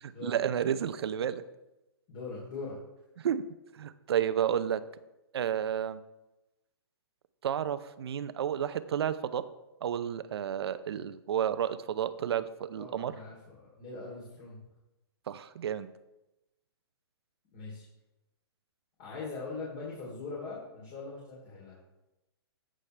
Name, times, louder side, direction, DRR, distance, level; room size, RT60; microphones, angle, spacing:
voice 1, 0.0-1.4 3.2-3.4 3.7-4.8 5.3-6.0 7.4-9.4 9.8-13.1 15.3-15.9, right 9 dB, 70° right, 13 dB, 0.7 m, -31 dB
voice 2, 2.1-2.8 12.7-14.6 17.5-17.8 19.0-21.8, left 4 dB, 40° left, -6 dB, 3.3 m, -41 dB
15.0 x 6.4 x 3.3 m, 0.97 s
hypercardioid pair, 145°, 14 cm